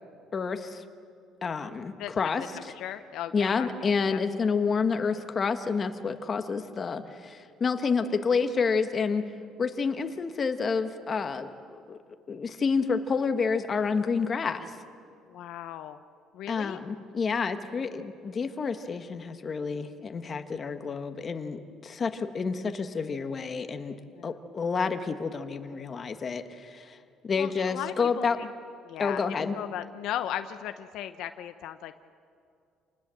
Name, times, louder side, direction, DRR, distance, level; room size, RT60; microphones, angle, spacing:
voice 1, 0.3-0.8 1.4-2.4 3.3-9.2 9.6-12.0 12.3-14.7 16.5-24.0 24.2-27.0 27.2-28.4 29.0-29.5, left 5 dB, 30° left, 8 dB, 1.4 m, -29 dB
voice 2, 2.5-3.7 4.1-4.2 15.3-16.0 16.3-16.8 24.2-24.4 27.4-28.5 28.8-31.9, left 11 dB, 70° left, 9 dB, 0.8 m, -37 dB
28.0 x 19.5 x 7.8 m, 2.4 s
cardioid pair, 125°, 0 cm